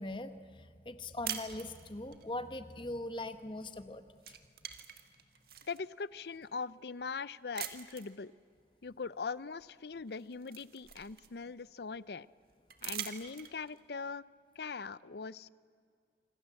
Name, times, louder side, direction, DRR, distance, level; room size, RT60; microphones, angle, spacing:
voice 1, 0.0-4.4, left 1 dB, 30° left, 9 dB, 1.2 m, -41 dB
sound 1, 1.2-2.2 3.6-3.9 4.2-5.8 6.4-6.5 7.5-8.2 9.6-9.7 10.1-11.6 12.7-13.8, right 9 dB, 55° right, 1.9 m, -43 dB
voice 2, 5.7-8.3 8.8-12.3 12.8-14.2 14.6-15.5, left 4 dB, 70° left, 18 dB, 0.6 m, -41 dB
27.0 x 25.5 x 7.7 m, 2.2 s
head